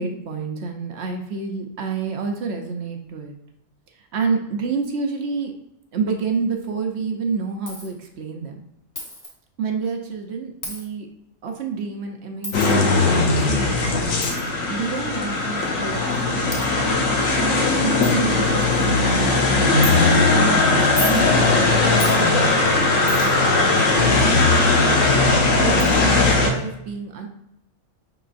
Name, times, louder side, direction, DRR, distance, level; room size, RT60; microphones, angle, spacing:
voice 1, 0.0-3.3 4.1-5.5 5.9-8.6 9.6-11.1 11.4-13.8 14.6-16.5 17.3-21.7 22.2-24.8 25.6-27.3, right 5 dB, 65° right, 4 dB, 0.8 m, -29 dB
Coin (dropping), 7.7-7.9 9.0-9.3 10.6-10.8 12.4-12.7 14.2-14.4 15.4-15.5 16.1-16.2 16.5-16.7 17.3-17.4 17.7-17.8 18.0-18.2 18.6-18.9 19.8-20.0 20.8-21.2 22.0-22.2 23.1-23.4 25.1-25.2 25.8-25.9, equal, 20° left, 0.6 m, -31 dB
sound 1, 12.5-26.5, left 3 dB, 90° left, 1.2 m, -18 dB
5.5 x 3.8 x 2.5 m, 0.81 s
omnidirectional pair, 1.4 m